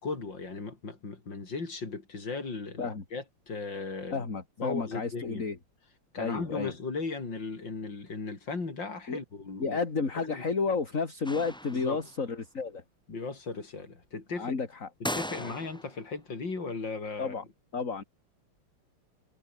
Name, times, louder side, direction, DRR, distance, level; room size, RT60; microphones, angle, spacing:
voice 1, 0.0-4.3 4.6-5.5 6.1-9.8 10.2-10.4 11.7-12.0 13.1-14.6 15.0-17.3, left 4 dB, 55° left, 5.4 m, -37 dB
voice 2, 4.1-5.6 6.2-6.7 9.1-9.2 9.6-12.8 14.4-14.9 15.4-15.5 17.2-17.4 17.7-18.0, left 4 dB, 35° left, 3.1 m, -31 dB
sound 1, 11.2-12.2 15.0-16.0, equal, 5° left, 1.3 m, -37 dB
omnidirectional pair, 2.4 m